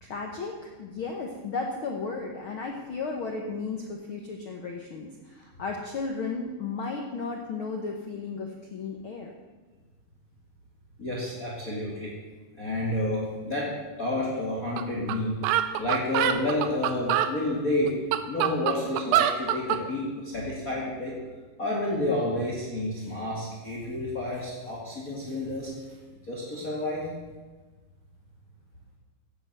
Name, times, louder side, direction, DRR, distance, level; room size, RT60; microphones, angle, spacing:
voice 1, 0.0-9.3, left 4 dB, 75° left, 1 dB, 1.2 m, -34 dB
voice 2, 11.0-12.1 12.5-13.7 14.0-15.4 15.8-18.0 18.3-21.2 21.6-25.7 26.2-27.1, left 1 dB, 25° left, -4 dB, 2.2 m, -30 dB
sound 1, 14.8-14.9 15.1-15.2 15.4-17.3 17.9-19.8, right 12 dB, 85° right, 2.5 m, -25 dB
15.0 x 8.9 x 6.8 m, 1.3 s
omnidirectional pair, 4.1 m